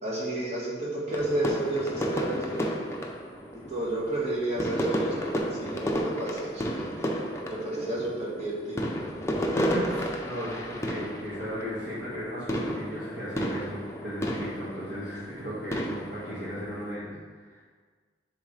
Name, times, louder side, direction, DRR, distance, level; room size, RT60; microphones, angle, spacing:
voice 1, 0.0-2.7 3.7-6.6 7.6-8.8, right 1 dB, 35° right, -6 dB, 1.7 m, -31 dB
sound 1, 1.1-17.0, equal, 15° left, 0.6 m, -32 dB
voice 2, 9.5-17.1 17.4-17.6, equal, 65° right, -12 dB, 1.8 m, -36 dB
10.0 x 3.7 x 3.3 m, 1.5 s
head